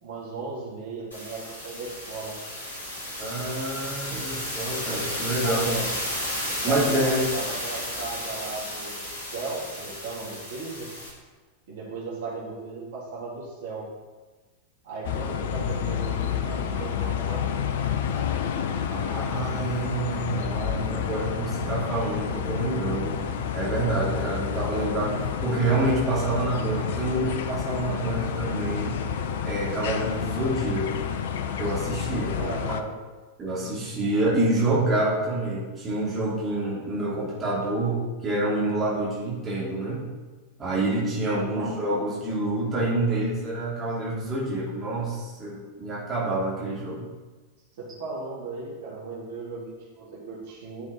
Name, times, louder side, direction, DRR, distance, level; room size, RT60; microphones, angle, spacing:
voice 1, 0.0-2.4 5.3-6.0 6.6-9.1 9.3-10.9 11.7-13.9 14.8-17.8 32.4-32.9 41.2-41.7 47.8-50.8, right 3 dB, 55° right, -6 dB, 3.6 m, -36 dB
sound 1, 1.1-11.1, left 1 dB, 90° right, 3.5 m, -33 dB
voice 2, 3.2-5.8 6.6-7.3 18.9-29.1 29.4-31.0 31.6-32.4 33.4-40.0 40.6-47.1, right 2 dB, 20° right, -7 dB, 3.2 m, -27 dB
sound 2, 15.0-32.8, left 8 dB, 55° left, 0.7 m, -29 dB
11.5 x 7.1 x 4.4 m, 1.3 s
figure-of-eight pair, 90°, 0 cm